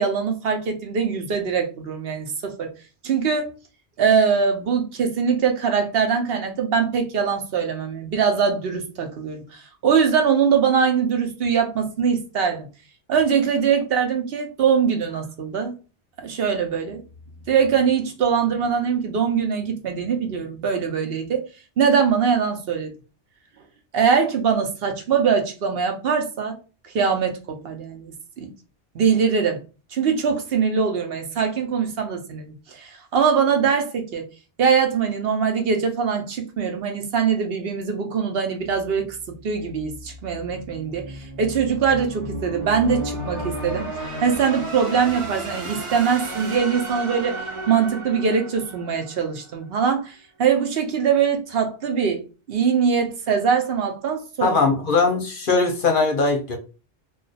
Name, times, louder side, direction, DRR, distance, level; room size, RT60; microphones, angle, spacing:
voice 1, 0.0-2.7 3.0-3.5 4.0-12.7 13.1-15.7 16.2-17.0 17.5-21.5 21.8-22.9 23.9-26.6 26.8-28.5 28.9-29.6 29.9-34.3 34.6-39.1 39.4-43.9 44.2-52.2 52.5-54.6, right 6 dB, 60° right, 4 dB, 0.9 m, -22 dB
sound 1, 38.6-49.6, right 1 dB, 30° right, 0.8 m, -34 dB
voice 2, 54.4-56.6, left 3 dB, 55° left, 3 dB, 0.7 m, -20 dB
2.4 x 2.4 x 3.8 m, 0.33 s
omnidirectional pair, 1.2 m